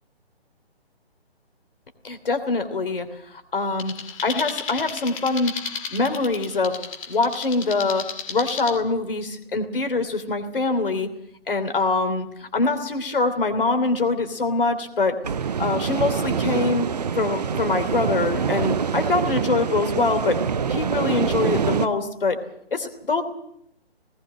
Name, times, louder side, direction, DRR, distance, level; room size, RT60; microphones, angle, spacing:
voice 1, 2.0-3.9 4.2-5.5 5.9-6.8 7.1-11.1 11.5-15.2 15.6-16.9 17.1-20.4 20.7-22.4 22.7-23.2, left 3 dB, 55° left, 7 dB, 3.1 m, -24 dB
sound 1, 3.8-8.8, left 6 dB, 30° left, 2.4 m, -34 dB
sound 2, 15.2-21.9, right 6 dB, 40° right, 0.8 m, -25 dB
19.0 x 18.0 x 7.7 m, 0.74 s
figure-of-eight pair, 145°, 32 cm